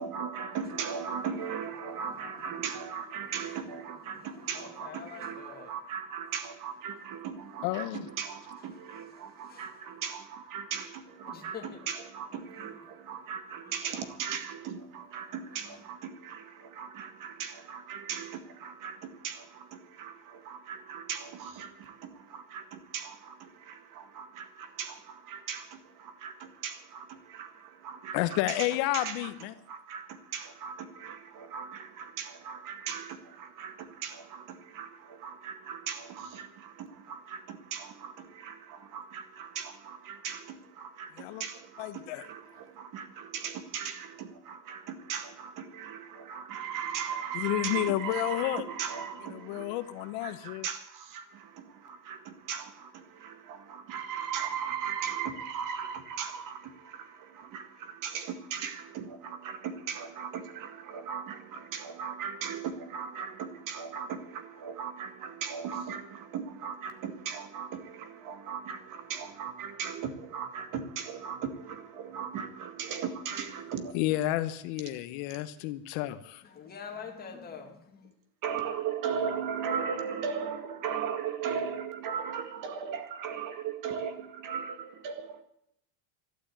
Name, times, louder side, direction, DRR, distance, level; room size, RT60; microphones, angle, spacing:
voice 1, 0.0-28.7 28.9-74.0 78.4-85.4, right 7 dB, 40° right, 1.9 m, -38 dB
voice 2, 1.1-1.5 1.8-3.7 4.0-5.7 8.7-9.8 11.3-11.8 12.3-12.8 13.1-13.2 13.6-14.1 15.5-15.9 76.4-78.1, left 6 dB, 20° left, 2.2 m, -48 dB
voice 3, 7.6-8.0 28.1-29.5 41.2-41.4 41.8-42.3 47.3-48.6 49.3-50.7 73.9-76.4, left 15 dB, 70° left, 1.1 m, -31 dB
13.0 x 11.5 x 8.6 m
cardioid pair, 175°, 48 cm